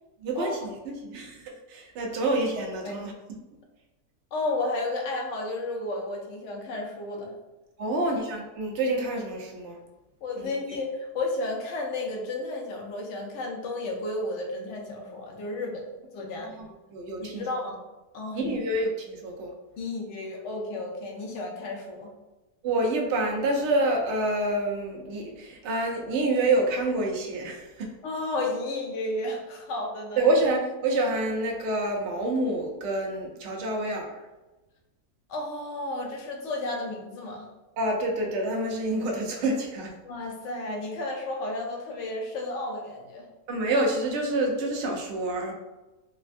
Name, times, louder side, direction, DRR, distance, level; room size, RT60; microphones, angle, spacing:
voice 1, 0.2-3.1 7.8-9.8 10.4-10.5 16.3-17.4 18.3-19.5 22.6-27.9 30.2-34.2 37.8-39.9 43.5-45.5, right 2 dB, 65° right, 1 dB, 0.6 m, -27 dB
voice 2, 4.3-7.3 7.9-8.0 10.2-15.8 16.1-16.6 17.2-17.8 18.1-18.5 19.8-22.1 28.0-30.3 35.3-37.4 40.0-43.3, left 2 dB, 65° left, 0 dB, 0.8 m, -32 dB
3.2 x 2.2 x 2.5 m, 1.1 s
omnidirectional pair, 1.7 m